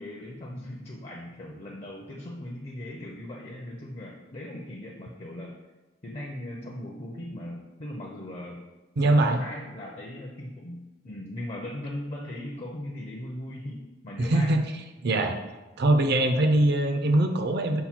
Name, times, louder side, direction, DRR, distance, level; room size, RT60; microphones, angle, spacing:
voice 1, 0.0-5.5 6.0-8.6 9.0-14.6, left 1 dB, 35° left, -2 dB, 0.5 m, -39 dB
voice 2, 9.0-9.4 14.2-14.7 15.0-15.4 15.8-17.8, right 1 dB, 55° right, 6 dB, 0.4 m, -22 dB
5.6 x 2.2 x 4.3 m, 1.1 s
head